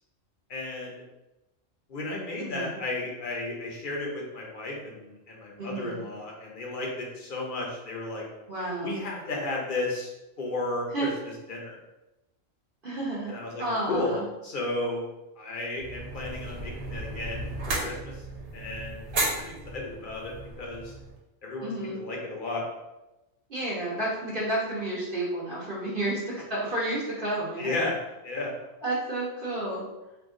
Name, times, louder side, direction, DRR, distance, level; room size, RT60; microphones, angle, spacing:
voice 1, 0.5-1.0 1.9-8.2 8.8-10.1 10.4-11.1 11.5-11.7 13.3-15.0 15.4-18.2 18.5-20.9 21.4-22.6 27.6-28.0 28.2-28.5, left 2 dB, 45° left, -2 dB, 0.8 m, -34 dB
voice 2, 2.4-2.8 5.6-6.1 8.5-9.0 10.9-11.1 12.8-14.3 21.6-22.0 23.5-27.9 28.8-29.8, right 1 dB, 45° right, -7 dB, 1.0 m, -31 dB
sound 1, 15.8-21.2, right 2 dB, 85° right, 1.2 m, -34 dB
2.9 x 2.4 x 3.6 m, 0.99 s
omnidirectional pair, 1.3 m